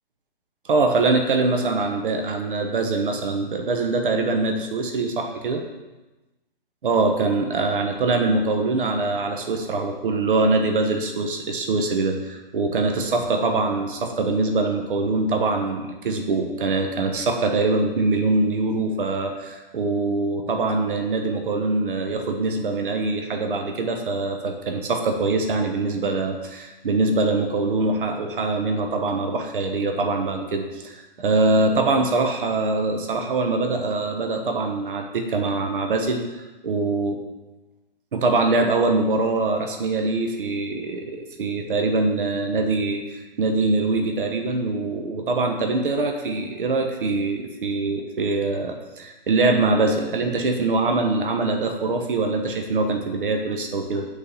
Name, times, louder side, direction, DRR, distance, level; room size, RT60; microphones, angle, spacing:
voice 1, 0.6-5.6 6.8-37.2 38.1-54.1, right 3 dB, 60° right, 4 dB, 1.2 m, -23 dB
8.6 x 4.3 x 7.0 m, 1.1 s
figure-of-eight pair, 130°, 29 cm